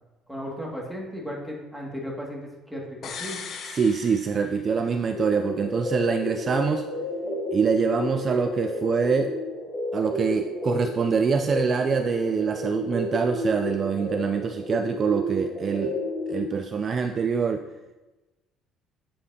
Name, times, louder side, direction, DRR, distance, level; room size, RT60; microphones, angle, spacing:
voice 1, 0.3-3.4, equal, ahead, -3 dB, 2.0 m, -35 dB
sound 1, 3.0-5.0 5.3-5.4, left 6 dB, 50° left, 0.9 m, -38 dB
voice 2, 3.7-6.9 7.5-9.3 9.9-16.0 16.3-17.6, right 5 dB, 35° right, 7 dB, 0.4 m, -25 dB
sound 2, 5.1-16.4, left 1 dB, 20° left, 1.9 m, -32 dB
8.4 x 7.6 x 2.8 m, 1.1 s
cardioid pair, 120°, 0 cm